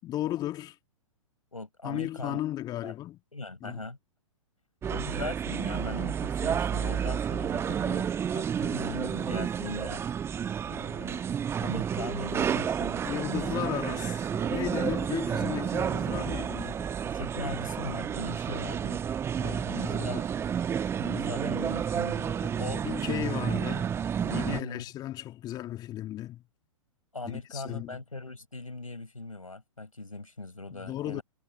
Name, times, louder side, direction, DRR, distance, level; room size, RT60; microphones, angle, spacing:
voice 1, 0.0-0.8 1.8-3.2 3.6-3.8 13.0-16.9 19.4-20.3 22.8-26.4 27.2-28.0 30.7-31.2, left 13 dB, 25° left, 2.2 m, -35 dB
voice 2, 1.5-2.4 2.8-2.9 3.3-4.0 4.9-10.0 10.7-11.2 11.6-13.4 17.0-19.0 19.7-20.3 20.9-22.9 24.5-24.9 27.1-31.2, left 2 dB, 85° left, 5.2 m, -39 dB
sound 1, 4.8-24.6, right 8 dB, 15° right, 1.2 m, -31 dB
figure-of-eight pair, 110°, 17 cm